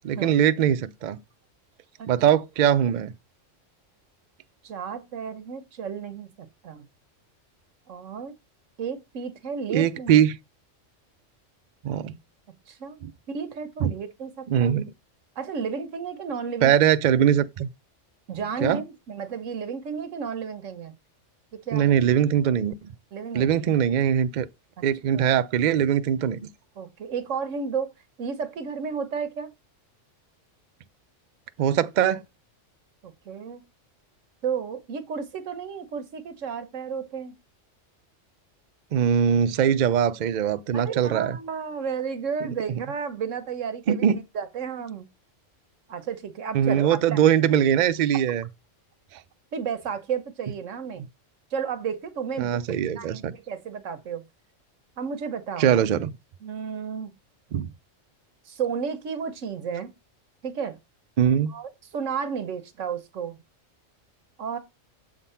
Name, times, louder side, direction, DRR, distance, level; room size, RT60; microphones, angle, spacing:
voice 1, 0.0-1.2 2.1-3.1 9.7-10.4 11.8-12.1 13.0-13.1 13.8-13.9 14.5-14.9 16.6-17.7 18.6-18.8 21.7-22.9 23.3-24.5 24.8-26.4 31.6-32.2 38.9-41.4 43.9-44.2 46.5-48.4 49.1-49.2 52.4-53.3 55.6-56.1 57.5-57.7 61.2-61.5, right 9 dB, 60° right, 0.4 m, -21 dB
voice 2, 4.6-6.9 7.9-8.3 8.8-10.1 12.5-13.0 13.3-14.8 15.4-16.7 18.3-20.9 21.5-21.9 23.1-23.6 24.8-24.9 25.1-25.3 26.8-27.9 28.2-29.5 33.0-33.6 34.4-37.4 40.7-45.1 45.9-47.2 49.5-51.0 51.5-54.2 55.0-55.8 56.4-57.1 58.4-59.9 60.4-60.8 61.5-63.4 64.4-64.6, right 6 dB, 80° right, 1.3 m, -32 dB
7.2 x 3.7 x 5.5 m
omnidirectional pair, 1.3 m